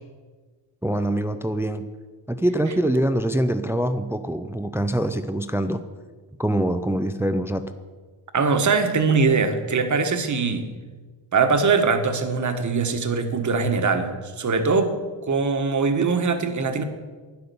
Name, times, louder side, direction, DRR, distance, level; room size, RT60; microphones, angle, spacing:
voice 1, 0.8-1.9 2.3-5.8 6.4-7.7, right 1 dB, 5° right, 9 dB, 0.4 m, -24 dB
voice 2, 8.3-10.7 11.3-14.9 15.2-16.8, right 4 dB, 40° right, 7 dB, 1.3 m, -22 dB
12.0 x 10.0 x 6.9 m, 1.4 s
wide cardioid pair, 165°, 45 cm